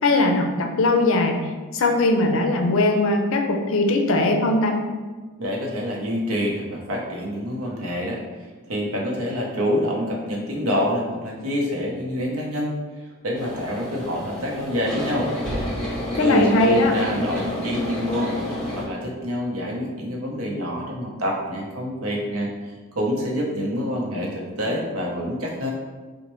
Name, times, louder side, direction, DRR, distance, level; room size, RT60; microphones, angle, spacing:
voice 1, 0.0-1.4 1.7-4.8 16.2-16.9, left 2 dB, 65° left, 3 dB, 0.4 m, -20 dB
voice 2, 5.4-12.7 13.2-15.3 15.9-18.4 18.8-22.5 22.9-25.7, equal, 80° right, -1 dB, 0.8 m, -26 dB
sound 1, 13.3-18.8, left 1 dB, 5° left, 0.8 m, -29 dB
4.2 x 2.1 x 3.0 m, 1.4 s
head